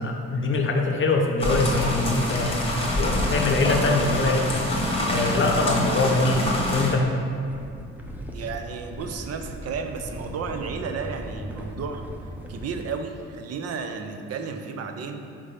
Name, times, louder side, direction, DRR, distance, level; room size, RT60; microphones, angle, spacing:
voice 1, 0.0-2.6 3.0-4.7 5.1-7.1, left 3 dB, 40° left, 2 dB, 0.7 m, -23 dB
sound 1, 1.4-6.9, left 1 dB, 20° left, 1.1 m, -26 dB
sound 2, 7.5-13.0, equal, 5° right, 0.6 m, -38 dB
voice 2, 8.3-12.0 12.5-15.2, right 5 dB, 55° right, 6 dB, 0.6 m, -33 dB
5.1 x 3.4 x 5.6 m, 2.4 s
cardioid pair, 90°, 30 cm